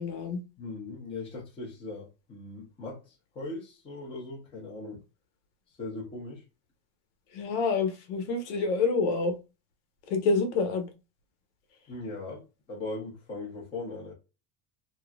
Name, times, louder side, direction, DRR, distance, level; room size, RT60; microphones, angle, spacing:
voice 1, 0.0-0.4 7.3-9.3 10.1-10.9, left 4 dB, 65° left, 1.2 m, -27 dB
voice 2, 0.6-5.0 5.8-6.4 11.9-14.1, left 2 dB, 15° left, 0.9 m, -39 dB
3.4 x 3.1 x 2.3 m
cardioid pair, 180°, 37 cm